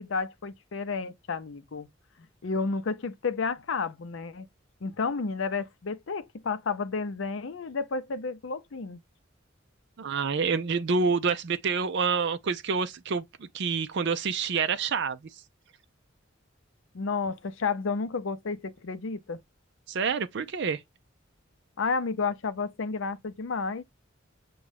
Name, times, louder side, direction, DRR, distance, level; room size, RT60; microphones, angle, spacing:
voice 1, 0.0-1.9 2.4-4.5 4.8-9.0 16.9-19.4 21.8-23.8, left 4 dB, 70° left, 0.6 m, -31 dB
voice 2, 10.0-15.2 19.9-20.8, right 5 dB, 60° right, 0.4 m, -27 dB
6.3 x 2.3 x 3.3 m
head